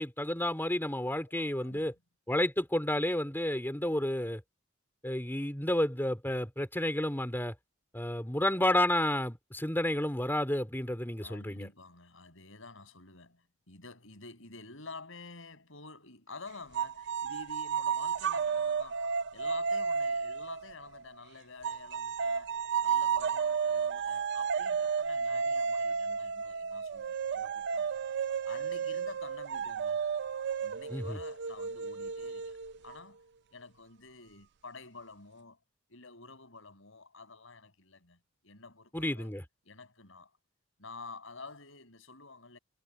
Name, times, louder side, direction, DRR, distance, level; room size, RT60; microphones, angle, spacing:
voice 1, 0.0-1.9 2.3-4.4 5.0-7.5 7.9-11.7 30.9-31.2 38.9-39.4, left 1 dB, 10° left, 3.3 m, -31 dB
voice 2, 1.3-1.9 11.2-22.5 22.8-28.0 28.4-30.0 30.6-32.6 32.8-33.2 33.5-35.6 35.9-38.2 38.4-39.3 39.6-40.3 40.8-42.6, left 3 dB, 70° left, 6.3 m, -50 dB
sound 1, 16.7-21.1 21.6-33.0, right 6 dB, 55° right, 0.5 m, -32 dB
head